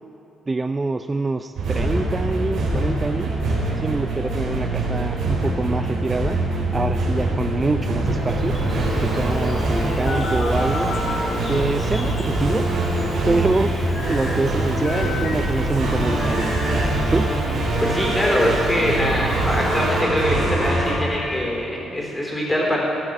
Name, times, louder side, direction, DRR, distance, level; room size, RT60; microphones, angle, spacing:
voice 1, 0.5-3.4 3.8-6.4 6.7-8.6 9.0-11.1 11.5-12.7 13.3-13.8 14.1-16.5 17.1-17.3, right 3 dB, 25° right, 8 dB, 0.4 m, -25 dB
sound 1, 1.5-21.0, right 2 dB, 75° right, 3.6 m, -23 dB
Bird vocalization bird call bird song, 8.0-20.0, left 1 dB, 30° left, 2.6 m, -35 dB
sound 2, 10.0-11.3 13.8-14.3 14.8-16.9 17.8-21.4, left 2 dB, 65° left, 3.1 m, -33 dB
voice 2, 17.8-22.8, left 1 dB, 15° left, -2 dB, 3.9 m, -23 dB
14.0 x 11.5 x 5.3 m, 2.8 s
cardioid pair, 90°, 0 cm